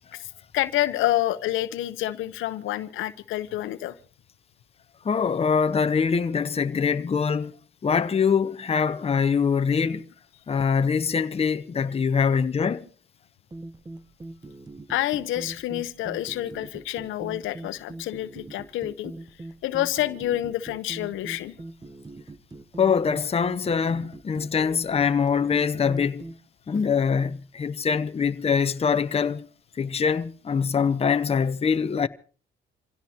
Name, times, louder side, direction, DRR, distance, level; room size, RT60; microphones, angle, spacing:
voice 1, 0.5-4.0 14.9-19.1 19.6-21.6, left 14 dB, 90° left, 0.9 m, -28 dB
voice 2, 5.0-7.5 7.8-10.1 10.5-12.9 22.8-26.3 26.7-29.5 29.8-32.1, left 6 dB, 30° left, 0.8 m, -23 dB
sound 1, 13.5-26.4, right 2 dB, 20° right, 0.9 m, -42 dB
27.0 x 16.5 x 2.9 m
cardioid pair, 90°, 20 cm